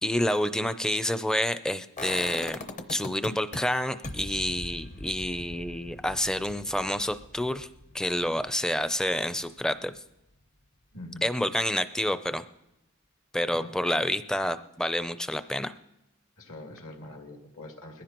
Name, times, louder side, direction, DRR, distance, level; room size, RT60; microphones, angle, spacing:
voice 1, 0.0-7.7 7.9-10.0 11.2-12.4 13.3-15.7, left 1 dB, 5° left, 11 dB, 0.5 m, -28 dB
sound 1, 2.0-3.6 4.0-9.9 10.2-10.3, left 2 dB, 35° left, 0.8 m, -41 dB
voice 2, 10.9-11.2 13.5-13.7 16.4-18.0, left 1 dB, 70° left, 1 dB, 2.4 m, -43 dB
21.0 x 15.0 x 3.0 m, 0.92 s
head